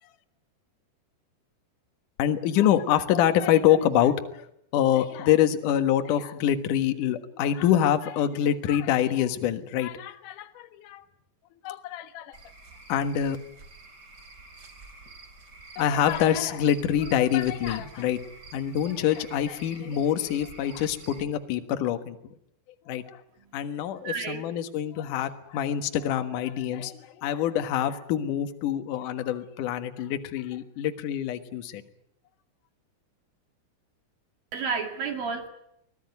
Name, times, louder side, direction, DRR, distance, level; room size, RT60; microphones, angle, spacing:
voice 1, 2.2-4.5 4.7-11.0 11.6-12.4 12.9-13.4 15.8-18.2 18.5-22.3 22.9-23.2 23.5-31.8, left 10 dB, 65° left, 8 dB, 2.1 m, -25 dB
Cricket / Frog, 12.3-21.2, right 3 dB, 25° right, 2.7 m, -48 dB
voice 2, 23.4-24.4 34.5-35.5, right 5 dB, 55° right, 5 dB, 3.5 m, -32 dB
24.5 x 18.0 x 9.4 m, 0.74 s
omnidirectional pair, 5.7 m